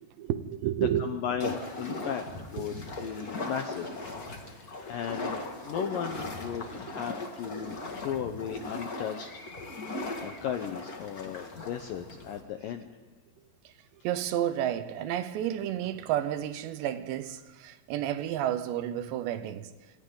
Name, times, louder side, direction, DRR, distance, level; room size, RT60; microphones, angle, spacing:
voice 1, 0.0-1.1 2.6-2.7 13.6-13.7 14.0-19.7, right 11 dB, 80° right, 3.1 m, -31 dB
voice 2, 1.0-4.0 4.5-9.3 10.2-12.9, left 8 dB, 75° left, 2.1 m, -36 dB
sound 1, 1.4-12.4, left 2 dB, 40° left, 1.4 m, -38 dB
27.0 x 26.0 x 3.9 m
omnidirectional pair, 5.1 m